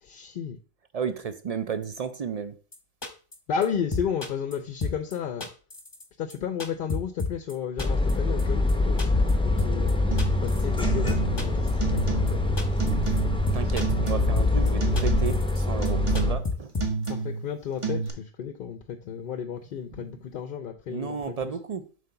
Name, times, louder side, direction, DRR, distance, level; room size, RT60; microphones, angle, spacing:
voice 1, 0.0-0.6 3.5-5.5 6.2-10.0 10.4-12.4 17.1-21.4, left 7 dB, 60° left, 0.6 m, -33 dB
voice 2, 0.9-2.6 13.5-16.7 19.9-20.2 20.9-21.9, right 6 dB, 55° right, 0.4 m, -33 dB
sound 1, 2.7-2.8 3.0-3.4 3.6-3.7 3.9-4.6 4.8-5.1 5.4-6.0 6.3-7.5 7.8-8.1 8.4-8.5 8.7-8.8 9.0-9.3 9.6-9.9 10.2-10.8 11.1-11.7 12.0-12.3 12.6-12.9 13.2-13.3 13.5-14.1 14.4-14.7 15.0-15.6 15.9-16.0 16.1-17.1, left 3 dB, 25° left, 0.9 m, -31 dB
sound 2, 7.8-16.3, left 2 dB, 5° left, 0.6 m, -24 dB
sound 3, 10.1-10.4 10.8-11.5 11.8-12.5 12.8-13.5 13.8-14.5 14.8-15.5 15.8-16.5 16.8-17.5 17.8-18.1, right 4 dB, 30° right, 1.1 m, -30 dB
7.6 x 3.2 x 5.7 m
omnidirectional pair, 1.2 m